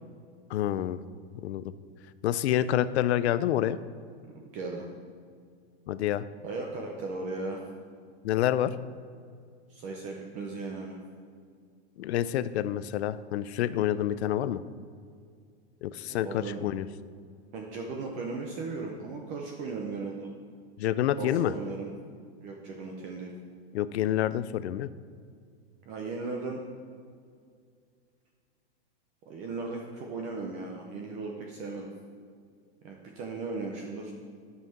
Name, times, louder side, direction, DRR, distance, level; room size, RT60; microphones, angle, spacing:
voice 1, 0.5-1.0 1.4-1.7 2.2-3.8 5.9-6.3 8.2-8.8 12.0-14.6 15.8-16.9 20.8-21.5 23.7-24.9, left 12 dB, 75° left, 14 dB, 0.6 m, -28 dB
voice 2, 4.2-4.9 6.4-7.6 9.7-11.0 16.1-16.6 17.5-20.3 21.2-21.9 22.4-23.3 25.9-26.6 29.3-31.9 32.8-34.1, right 3 dB, 20° right, 1 dB, 0.5 m, -37 dB
12.0 x 5.6 x 5.6 m, 2.2 s
supercardioid pair, 165°, 33 cm